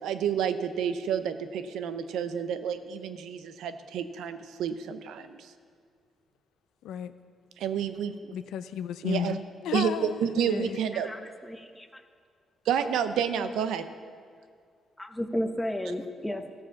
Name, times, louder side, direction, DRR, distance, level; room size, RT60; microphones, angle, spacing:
voice 1, 0.0-5.5 7.6-8.4 9.0-9.4 9.7-11.1 12.7-13.9, right 8 dB, 90° right, 10 dB, 0.6 m, -30 dB
voice 2, 8.3-10.8, left 8 dB, 90° left, 12 dB, 0.4 m, -33 dB
voice 3, 10.9-12.0 15.0-16.4, left 1 dB, 10° left, 7 dB, 0.8 m, -33 dB
14.5 x 4.9 x 7.0 m, 2.1 s
cardioid pair, 85°, 0 cm